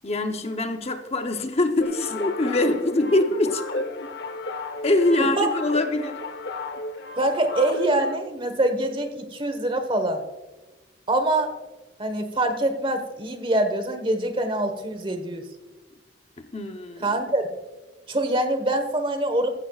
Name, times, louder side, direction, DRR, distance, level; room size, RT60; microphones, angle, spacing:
voice 1, 0.0-3.8 4.8-6.2 16.4-17.1, left 2 dB, 35° left, 6 dB, 0.8 m, -24 dB
sound 1, 1.8-8.2, left 2 dB, 65° left, 1.0 m, -34 dB
voice 2, 7.2-10.2 11.1-11.6 12.0-15.5 17.0-17.4 18.1-19.5, right 1 dB, 30° right, 7 dB, 1.3 m, -24 dB
15.0 x 15.0 x 2.4 m, 1.1 s
head